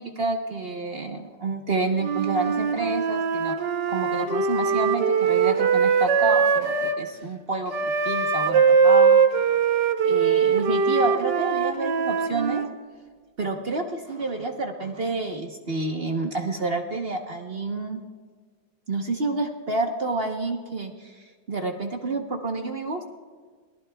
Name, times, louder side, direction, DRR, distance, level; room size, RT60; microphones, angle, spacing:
voice 1, 0.0-3.6 3.9-9.2 10.0-12.6 13.4-18.0 18.9-23.0, right 3 dB, 40° right, 3 dB, 1.0 m, -29 dB
Wind instrument woodwind instrument, 2.0-7.0 7.7-12.7, right 6 dB, 65° right, 1.5 m, -21 dB
25.5 x 18.5 x 2.3 m, 1.5 s
omnidirectional pair, 2.1 m